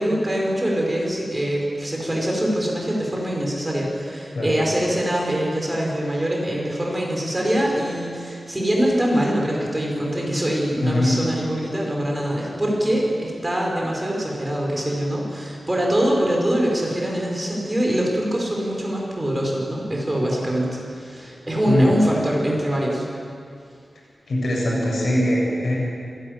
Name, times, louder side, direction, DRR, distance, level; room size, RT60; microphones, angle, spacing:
voice 1, 0.0-23.1, equal, 20° right, -2 dB, 5.1 m, -23 dB
voice 2, 10.8-11.1 21.7-21.9 24.3-25.8, left 1 dB, 70° left, -3 dB, 7.4 m, -21 dB
26.0 x 12.0 x 9.7 m, 2.4 s
wide cardioid pair, 115°, 0 cm